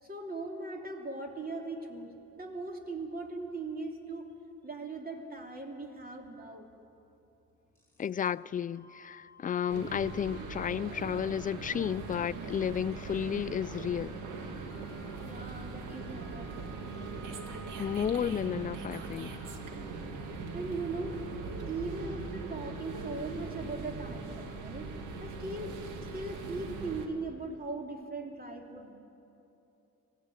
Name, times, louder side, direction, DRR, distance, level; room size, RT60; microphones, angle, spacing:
voice 1, 0.0-4.3 4.6-6.7 15.2-16.5 20.5-21.2 21.6-24.9 25.2-25.8 26.1-29.0, right 3 dB, 30° right, 3.0 m, -39 dB
sound 1, 7.8-8.3 8.7-19.6, right 1 dB, 10° left, 6.7 m, -57 dB
voice 2, 8.0-14.1 17.8-19.4, left 8 dB, 30° left, 0.4 m, -32 dB
sound 2, 9.7-27.1, right 4 dB, 85° right, 2.0 m, -40 dB
21.0 x 15.5 x 9.2 m
cardioid pair, 90°, 30 cm